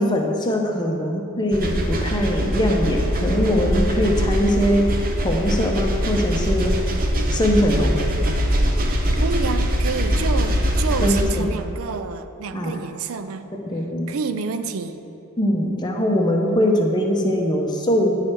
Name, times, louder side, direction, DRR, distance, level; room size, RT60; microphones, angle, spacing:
voice 1, 0.0-4.8 5.2-6.8 7.3-8.0 11.0-11.6 12.5-12.8 13.7-14.1 15.4-18.1, equal, 20° left, 1 dB, 0.7 m, -21 dB
sound 1, 1.5-11.2, equal, 45° right, 0.6 m, -22 dB
voice 2, 9.2-13.4 14.1-15.0, right 5 dB, 85° right, 10 dB, 0.4 m, -28 dB
9.1 x 3.2 x 6.0 m, 2.8 s
head